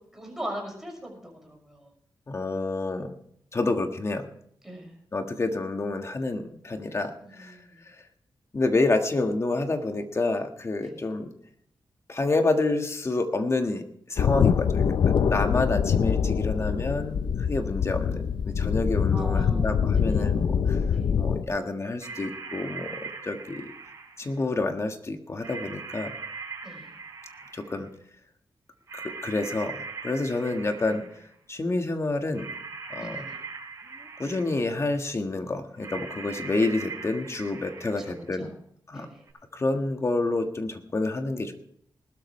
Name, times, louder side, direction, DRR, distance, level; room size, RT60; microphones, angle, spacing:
voice 1, 0.1-1.9 4.6-5.0 7.2-7.8 10.8-11.0 19.1-20.2 20.9-21.1 26.6-26.9 33.0-33.4 38.1-38.5 38.9-39.2, right 1 dB, 5° right, 0 dB, 6.0 m, -40 dB
voice 2, 2.3-3.1 3.5-4.3 5.1-7.6 7.8-7.9 8.5-11.3 12.1-20.8 21.2-23.7 24.2-26.2 27.5-27.9 28.9-31.0 31.5-32.5 32.9-33.3 34.2-38.5 38.9-39.1 39.5-41.5, left 2 dB, 35° left, 6 dB, 1.5 m, -28 dB
sound 1, 14.2-21.4, left 7 dB, 70° left, 0.6 m, -24 dB
sound 2, 22.0-24.4 25.4-27.8 28.9-31.3 32.3-34.8 35.8-38.2 39.3-39.4, right 4 dB, 35° right, 6.0 m, -40 dB
20.0 x 12.5 x 3.2 m, 0.68 s
wide cardioid pair, 110°, 8 cm